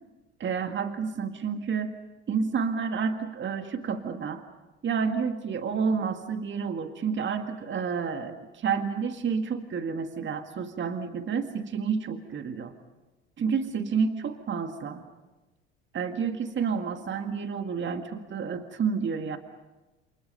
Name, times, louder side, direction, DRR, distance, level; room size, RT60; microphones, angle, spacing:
voice 1, 0.4-2.0 2.3-4.4 4.8-12.7 13.4-15.0 15.9-19.4, right 6 dB, 35° right, 7 dB, 1.8 m, -30 dB
29.5 x 28.0 x 5.6 m, 1.1 s
hypercardioid pair, 70°, 32 cm